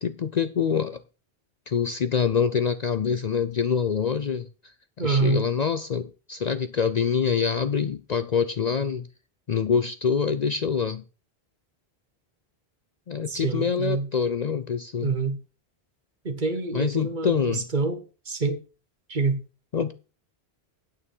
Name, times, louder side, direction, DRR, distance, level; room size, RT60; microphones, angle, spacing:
voice 1, 0.0-1.0 1.7-4.5 5.0-9.1 9.5-11.0 13.1-15.1 16.7-17.7 19.7-19.9, left 6 dB, 50° left, 0.6 m, -25 dB
voice 2, 5.0-5.4 13.3-14.1 15.0-15.4 16.2-18.0 18.3-18.6 19.1-19.4, right 4 dB, 50° right, 1.4 m, -26 dB
9.1 x 8.4 x 5.5 m
omnidirectional pair, 1.1 m